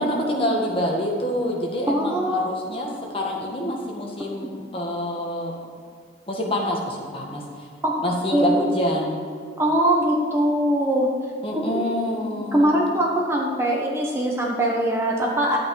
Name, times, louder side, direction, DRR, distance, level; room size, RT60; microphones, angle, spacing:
voice 1, 0.0-5.5 6.3-7.7 8.0-9.2 11.4-12.8, equal, 30° left, -1 dB, 1.5 m, -26 dB
voice 2, 1.9-2.5 7.8-8.0 8.3-8.7 9.6-11.1 11.5-11.8 12.5-15.6, right 1 dB, 15° right, -2 dB, 1.1 m, -22 dB
11.0 x 8.6 x 4.7 m, 2.2 s
head